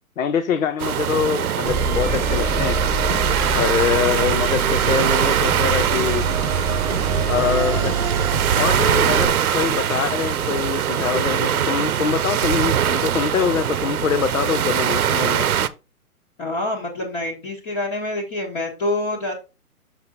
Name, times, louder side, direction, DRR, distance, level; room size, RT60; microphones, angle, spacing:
voice 1, 0.2-2.8 3.5-6.3 7.2-7.9 8.6-15.5, left 8 dB, 60° left, 0.9 m, -24 dB
sound 1, 0.8-15.7, right 9 dB, 65° right, 0.8 m, -22 dB
sound 2, 1.7-9.3, right 4 dB, 5° right, 1.2 m, -24 dB
sound 3, 4.1-9.3, right 7 dB, 20° right, 0.7 m, -34 dB
voice 2, 16.4-19.3, left 2 dB, 25° left, 1.6 m, -26 dB
6.4 x 5.6 x 4.0 m
hypercardioid pair, 155°, 45 cm